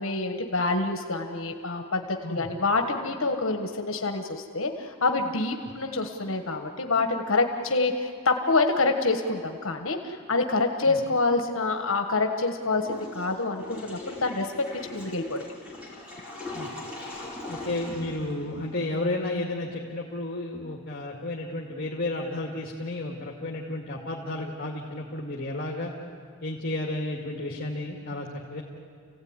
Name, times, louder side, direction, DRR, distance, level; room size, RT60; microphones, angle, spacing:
voice 1, 0.0-14.5 14.8-15.5, left 3 dB, 65° left, 4 dB, 1.5 m, -27 dB
Water / Toilet flush, 12.8-19.0, left 2 dB, 5° right, 4.7 m, -40 dB
voice 2, 17.5-25.9 26.4-28.6, left 2 dB, 40° left, -2 dB, 2.3 m, -32 dB
29.5 x 16.5 x 9.7 m, 2.3 s
head